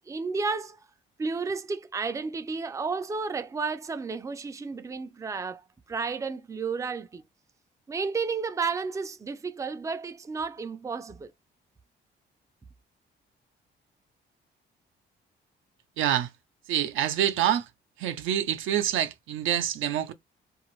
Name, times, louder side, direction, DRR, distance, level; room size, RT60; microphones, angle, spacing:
voice 1, 0.1-0.8 1.2-7.2 7.9-11.3, right 4 dB, 15° right, 0.4 m, -32 dB
voice 2, 16.0-16.3 16.7-17.7 18.0-20.1, right 11 dB, 80° right, 0.6 m, -26 dB
2.5 x 2.4 x 3.1 m
cardioid pair, 90°, 20 cm